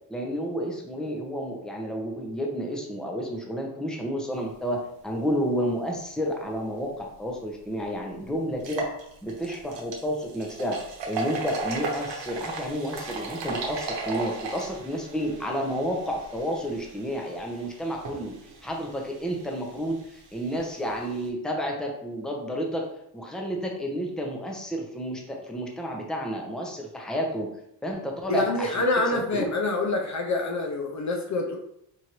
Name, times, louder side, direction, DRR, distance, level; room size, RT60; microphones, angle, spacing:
voice 1, 0.1-4.8 5.0-8.9 9.2-10.8 11.1-18.3 18.6-22.8 23.1-27.5 27.8-29.5, equal, ahead, 0 dB, 0.6 m, -31 dB
sound 1, 7.3-7.4 7.8-7.9 8.5-21.3, right 3 dB, 75° right, 1.0 m, -37 dB
voice 2, 28.3-31.6, left 2 dB, 45° left, 1 dB, 0.5 m, -26 dB
4.5 x 2.6 x 2.9 m, 0.77 s
cardioid pair, 110°, 43 cm